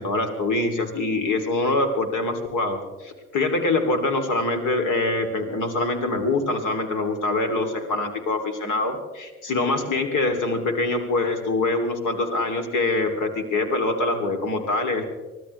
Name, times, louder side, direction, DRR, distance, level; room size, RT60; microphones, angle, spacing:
voice 1, 0.0-15.0, left 2 dB, 45° left, 6 dB, 2.9 m, -24 dB
24.0 x 17.0 x 3.2 m, 1.2 s
figure-of-eight pair, 65°, 42 cm